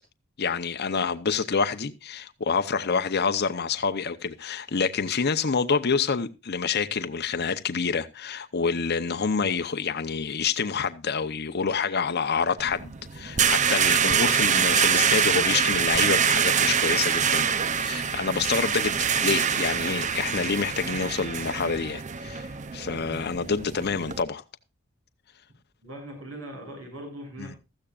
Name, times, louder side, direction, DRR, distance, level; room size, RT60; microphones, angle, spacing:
voice 1, 0.4-17.5 17.8-24.4 27.4-27.5, left 5 dB, 55° left, 0.8 m, -27 dB
sound 1, 12.6-24.2, right 7 dB, 35° right, 0.6 m, -25 dB
voice 2, 25.8-27.6, right 1 dB, 75° right, 7.5 m, -40 dB
15.5 x 14.0 x 2.4 m
head